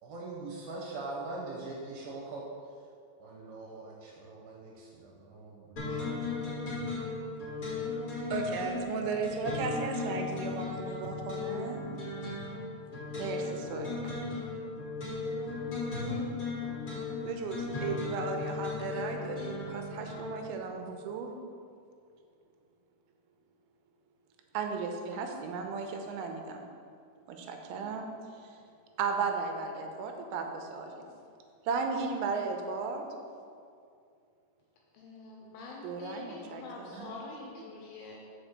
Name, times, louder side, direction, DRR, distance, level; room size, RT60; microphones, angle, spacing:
voice 1, 0.0-2.5 3.2-6.6, right 2 dB, 70° right, -3 dB, 2.4 m, -42 dB
sound 1, 5.8-20.5, left 3 dB, 50° left, 1.0 m, -36 dB
voice 2, 8.3-11.9 13.2-14.1 17.3-21.3 24.5-26.6 27.3-28.1 29.0-30.9 31.7-33.0 35.8-37.1, right 4 dB, 85° right, 4 dB, 3.1 m, -35 dB
voice 3, 34.9-38.2, left 3 dB, 85° left, -1 dB, 2.4 m, -45 dB
6.1 x 5.1 x 6.7 m, 2.3 s
omnidirectional pair, 5.2 m